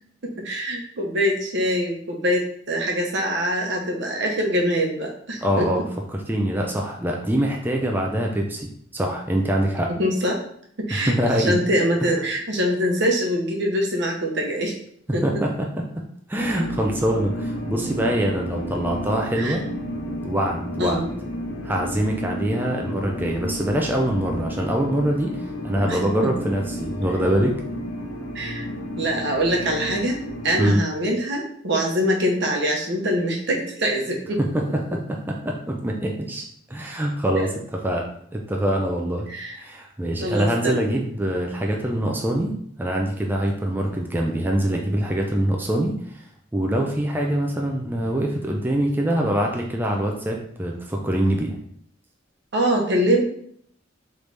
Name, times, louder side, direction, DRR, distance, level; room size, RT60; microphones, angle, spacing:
voice 1, 0.2-5.8 10.0-10.4 10.8-14.8 15.1-15.4 19.4-19.6 20.8-21.1 25.9-26.3 28.3-28.7 29.0-34.4 37.3-37.5 39.3-39.6 40.2-41.0 52.5-53.2, equal, 65° right, 0 dB, 0.9 m, -24 dB
voice 2, 5.4-5.8 6.1-9.9 10.9-11.6 15.2-15.5 16.3-19.6 20.2-21.0 21.6-27.5 30.6-30.8 34.4-34.6 34.9-38.1 38.3-39.3 39.6-42.5 42.8-46.2 46.5-51.5, right 1 dB, 10° right, 0 dB, 0.4 m, -24 dB
sound 1, 16.4-30.7, left 1 dB, 80° left, 0.8 m, -32 dB
3.9 x 3.3 x 3.3 m, 0.66 s
head